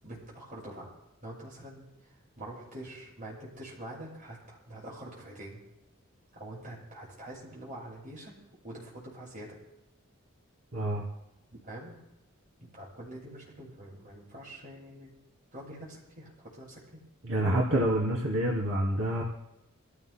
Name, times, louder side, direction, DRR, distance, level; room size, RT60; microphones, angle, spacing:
voice 1, 0.0-0.9 1.2-5.6 6.3-8.4 8.6-9.6 11.5-12.0 12.7-15.1 15.5-17.0, right 1 dB, 40° right, -5 dB, 7.4 m, -45 dB
voice 2, 10.7-11.1 17.2-19.2, right 1 dB, 70° right, -4 dB, 2.8 m, -27 dB
28.0 x 16.5 x 2.2 m, 0.90 s
head